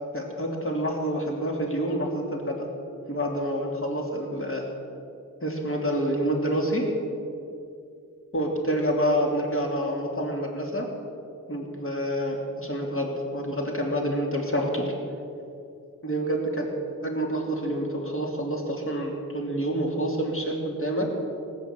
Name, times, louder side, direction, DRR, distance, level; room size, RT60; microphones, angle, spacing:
voice 1, 0.1-2.6 3.1-4.6 5.4-6.9 8.3-10.9 11.5-14.9 16.0-16.7 17.0-21.1, equal, 40° left, 0 dB, 3.1 m, -27 dB
18.5 x 9.1 x 7.7 m, 2.6 s
wide cardioid pair, 80°, 32 cm